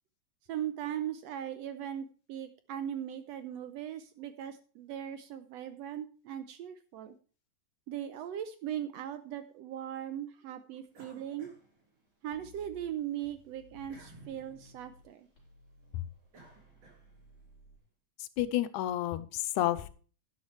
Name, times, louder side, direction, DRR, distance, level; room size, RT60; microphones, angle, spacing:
voice 1, 0.5-7.1 7.9-11.5 12.2-15.3, right 10 dB, 75° right, 10 dB, 1.6 m, -39 dB
sound 1, 10.9-12.5 12.9-17.4, right 2 dB, 55° right, 4.8 m, -58 dB
sound 2, 12.3-15.0 15.4-17.8, left 3 dB, 50° left, 5.0 m, -60 dB
voice 2, 18.2-19.9, left 13 dB, 80° left, 15 dB, 2.1 m, -31 dB
12.0 x 10.5 x 3.2 m, 0.39 s
omnidirectional pair, 3.5 m